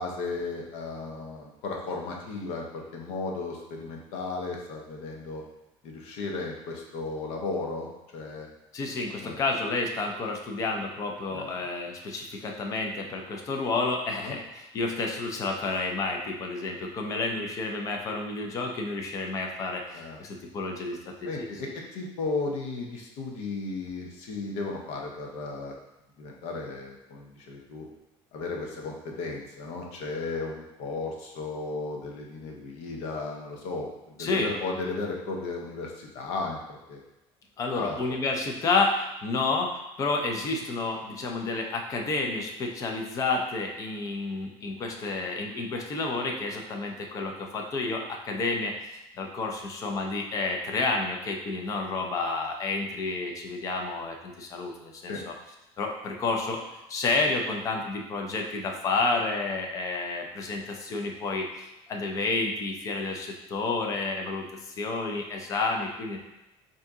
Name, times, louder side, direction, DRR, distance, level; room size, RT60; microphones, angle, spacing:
voice 1, 0.0-5.4 5.8-8.5 9.2-9.4 11.3-11.5 14.2-14.3 19.9-20.2 21.2-25.7 26.2-27.9 28.3-37.0 37.7-38.1 55.1-55.2, left 3 dB, 65° left, 0 dB, 0.8 m, -35 dB
voice 2, 8.7-21.5 34.2-34.5 37.6-55.3 55.8-56.6 56.9-66.2, left 3 dB, 25° left, 2 dB, 0.5 m, -30 dB
3.7 x 2.7 x 3.5 m, 0.95 s
cardioid pair, 160°, 13 cm